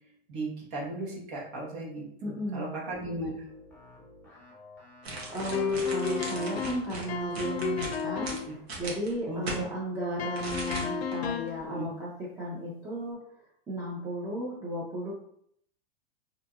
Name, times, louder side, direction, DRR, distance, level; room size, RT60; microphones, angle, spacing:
voice 1, 0.3-3.5 6.5-6.6 8.3-8.5 9.3-9.6 11.6-11.9, right 2 dB, 55° right, -4 dB, 1.1 m, -36 dB
voice 2, 2.2-2.7 5.3-8.3 8.8-12.1 12.4-13.2 13.7-15.1, right 1 dB, 10° right, -7 dB, 0.6 m, -34 dB
sound 1, 3.4-8.7, left 1 dB, 5° left, 1.1 m, -53 dB
sound 2, 5.0-9.6 10.3-11.1 11.5-11.6, right 2 dB, 90° right, 1.0 m, -38 dB
sound 3, 5.5-8.5 10.2-11.6, left 5 dB, 90° left, 0.5 m, -32 dB
2.8 x 2.6 x 2.3 m, 0.69 s
hypercardioid pair, 120°, 30 cm